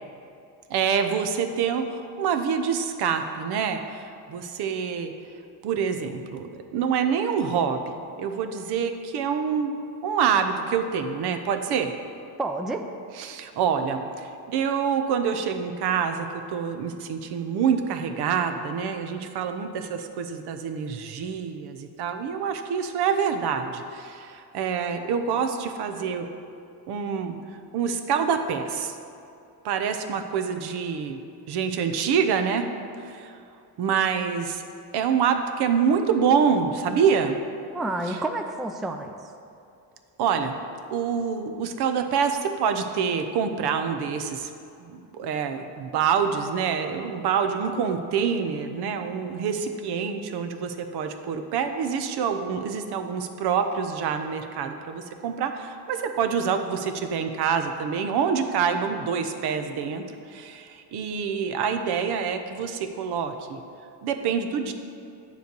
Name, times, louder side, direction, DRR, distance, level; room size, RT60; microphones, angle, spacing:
voice 1, 0.7-5.1 5.6-9.7 10.0-11.9 13.2-26.3 26.9-27.4 27.7-29.0 29.6-31.2 31.5-32.8 33.0-33.3 33.8-34.6 34.9-37.4 40.2-40.6 40.9-44.5 44.8-60.0 60.3-63.6 64.0-64.7, right 7 dB, 65° right, 7 dB, 0.8 m, -26 dB
voice 2, 12.4-12.9 37.7-39.3, right 2 dB, ahead, 5 dB, 0.3 m, -29 dB
9.1 x 3.3 x 6.7 m, 2.6 s
cardioid pair, 95°, 42 cm